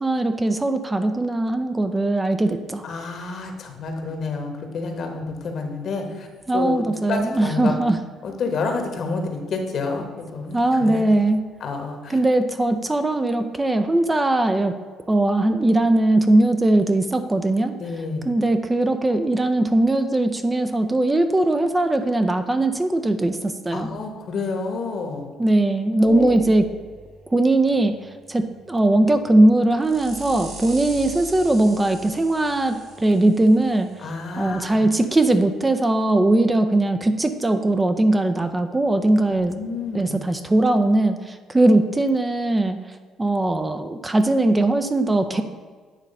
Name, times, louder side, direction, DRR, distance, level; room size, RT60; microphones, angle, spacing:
voice 1, 0.0-2.8 6.5-8.0 10.5-11.5 12.1-14.7 15.1-17.8 18.3-23.9 25.4-26.6 27.3-33.9 34.4-39.5 39.9-45.4, right 2 dB, 15° right, 8 dB, 0.5 m, -20 dB
voice 2, 2.8-6.3 6.5-7.7 8.2-11.1 11.6-12.2 17.8-18.3 23.7-25.3 26.0-26.4 34.0-34.9 39.3-40.3 45.3-45.4, left 4 dB, 55° left, 4 dB, 1.2 m, -29 dB
sound 1, 26.0-35.2, right 3 dB, 50° right, 2.2 m, -43 dB
9.0 x 3.1 x 5.3 m, 1.5 s
cardioid pair, 95°, 0 cm